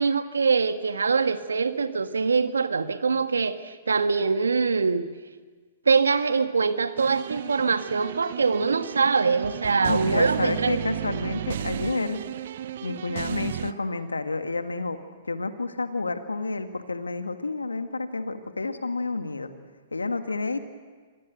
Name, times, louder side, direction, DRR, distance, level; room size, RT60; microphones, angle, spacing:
voice 1, 0.0-5.0 5.8-10.8, right 5 dB, 80° right, 10 dB, 1.4 m, -23 dB
sound 1, 7.0-13.7, right 10 dB, 60° right, 0.8 m, -33 dB
voice 2, 9.8-12.2 12.8-15.0 15.3-19.5 19.9-20.6, left 3 dB, 90° left, 8 dB, 1.7 m, -29 dB
26.0 x 17.5 x 8.1 m, 1.5 s
figure-of-eight pair, 115°, 0 cm